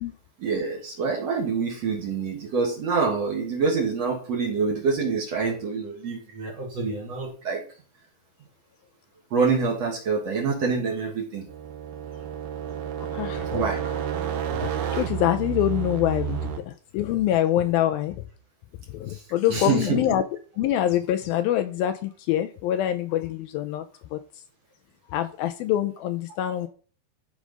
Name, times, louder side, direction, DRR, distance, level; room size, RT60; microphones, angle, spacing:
voice 1, 0.4-7.6 9.3-11.4 13.5-13.8 19.1-19.2 19.5-20.0, right 4 dB, 45° right, 0 dB, 2.7 m, -26 dB
sound 1, 11.5-16.6, right 9 dB, 75° right, 3.2 m, -30 dB
voice 2, 13.0-13.7 14.5-18.2 18.9-20.2 20.6-23.9 24.1-24.2 25.1-26.7, left 12 dB, 80° left, 9 dB, 2.3 m, -25 dB
13.5 x 5.0 x 5.4 m, 0.41 s
omnidirectional pair, 4.6 m